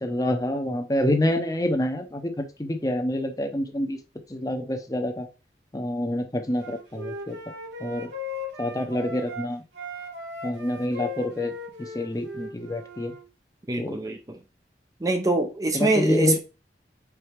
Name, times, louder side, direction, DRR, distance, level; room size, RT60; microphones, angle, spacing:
voice 1, 0.0-4.0 4.3-5.3 5.7-7.4 7.8-8.1 8.6-9.6 10.4-11.5 11.8-13.1 13.8-14.1 15.7-16.4, left 1 dB, 20° left, 0.8 m, -27 dB
Wind instrument woodwind instrument, 6.6-9.5 9.7-13.2, left 2 dB, 85° right, 2.7 m, -37 dB
voice 2, 13.7-14.4 15.0-16.4, right 2 dB, 20° right, 0.5 m, -24 dB
4.7 x 4.0 x 5.1 m
head